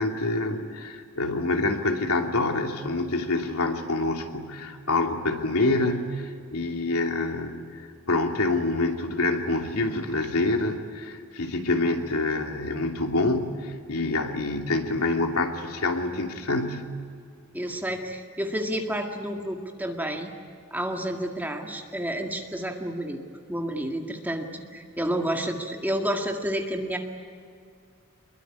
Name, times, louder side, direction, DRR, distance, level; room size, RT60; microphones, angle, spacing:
voice 1, 0.0-7.6 8.1-16.9, left 2 dB, 85° left, 3 dB, 2.8 m, -26 dB
voice 2, 17.5-20.3 20.7-23.2 23.5-27.0, right 1 dB, 10° right, 2 dB, 2.0 m, -30 dB
25.0 x 22.0 x 9.7 m, 2.3 s
head